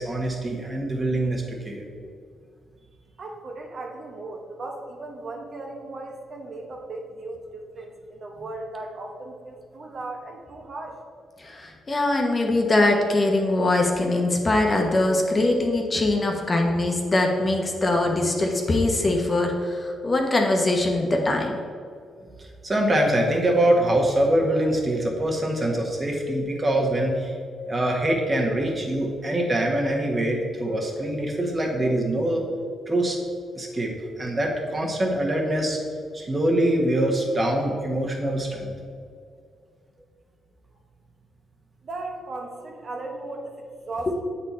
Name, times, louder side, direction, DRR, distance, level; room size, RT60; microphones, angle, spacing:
voice 1, 0.0-1.8 22.4-27.3 27.7-32.4 32.9-33.2 33.5-33.9 34.2-35.8 36.1-38.7, right 1 dB, 30° right, 0 dB, 1.4 m, -24 dB
voice 2, 3.2-11.0 41.8-44.2, right 2 dB, 50° right, 1 dB, 1.0 m, -37 dB
voice 3, 11.4-21.5, left 2 dB, 30° left, 1 dB, 1.0 m, -22 dB
7.8 x 4.4 x 4.3 m, 2.2 s
cardioid pair, 80°, 0 cm